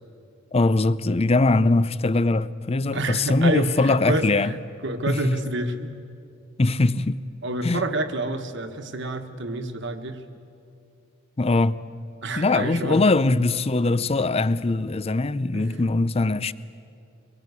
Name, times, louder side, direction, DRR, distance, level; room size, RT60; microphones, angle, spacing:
voice 1, 0.5-4.5 5.1-5.3 6.6-7.2 7.6-7.8 11.4-11.8 12.4-16.5, left 2 dB, 30° left, 0.5 m, -21 dB
voice 2, 2.9-4.6 4.8-6.0 7.4-10.2 12.2-13.1 15.5-15.8, right 2 dB, 65° right, 1.5 m, -28 dB
23.5 x 21.5 x 8.3 m
head